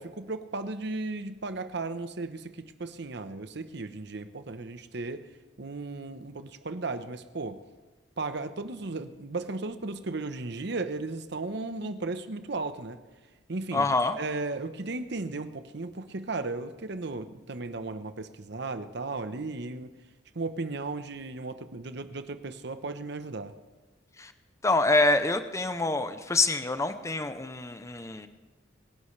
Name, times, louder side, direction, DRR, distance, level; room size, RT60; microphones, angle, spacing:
voice 1, 0.0-5.2 5.6-7.6 8.2-13.0 13.5-19.9 20.3-23.5, right 3 dB, 65° right, 10 dB, 0.9 m, -35 dB
voice 2, 13.7-14.2 24.2-24.3 24.6-28.3, left 2 dB, 15° left, 9 dB, 0.6 m, -26 dB
25.5 x 11.0 x 3.3 m, 1.2 s
head